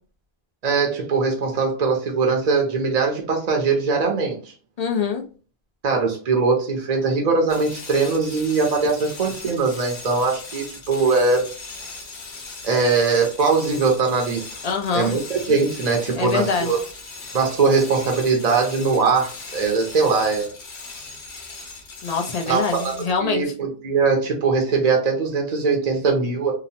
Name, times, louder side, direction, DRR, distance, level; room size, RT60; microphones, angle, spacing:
voice 1, 0.6-4.4 5.8-11.5 12.6-14.5 14.9-16.8 17.3-20.5 22.5-22.9 23.2-26.5, right 4 dB, 50° right, 2 dB, 0.6 m, -21 dB
voice 2, 4.8-5.2 14.6-15.1 16.2-16.7 22.0-23.4, left 5 dB, 50° left, 2 dB, 0.5 m, -24 dB
sound 1, 7.5-23.2, left 3 dB, 85° left, 1.1 m, -38 dB
2.9 x 2.0 x 2.7 m, 0.38 s
omnidirectional pair, 1.1 m